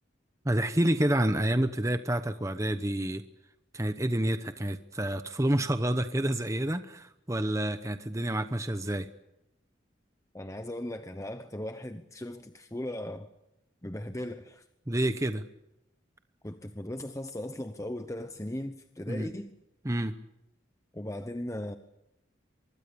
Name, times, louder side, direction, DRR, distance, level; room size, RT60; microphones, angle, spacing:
voice 1, 0.4-3.2 3.7-9.1 14.9-15.4 19.1-19.3 19.8-20.1, right 1 dB, 15° right, 9 dB, 1.0 m, -28 dB
voice 2, 10.3-13.3 13.8-14.6 16.4-19.5 20.9-21.8, left 1 dB, 15° left, 8 dB, 0.9 m, -38 dB
24.5 x 22.5 x 7.0 m, 0.89 s
head